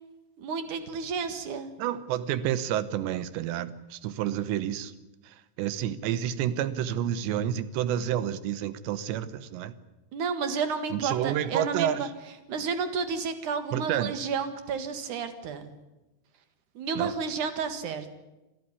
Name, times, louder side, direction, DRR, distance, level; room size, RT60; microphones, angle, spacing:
voice 1, 0.4-1.7 10.1-12.1 12.5-15.7 16.8-18.1, right 5 dB, 55° right, 2.8 m, -31 dB
voice 2, 1.8-4.9 5.3-9.7 10.9-12.1 13.7-14.3 17.0-17.1, right 10 dB, 80° right, 3.3 m, -29 dB
27.0 x 14.5 x 9.7 m
omnidirectional pair, 5.0 m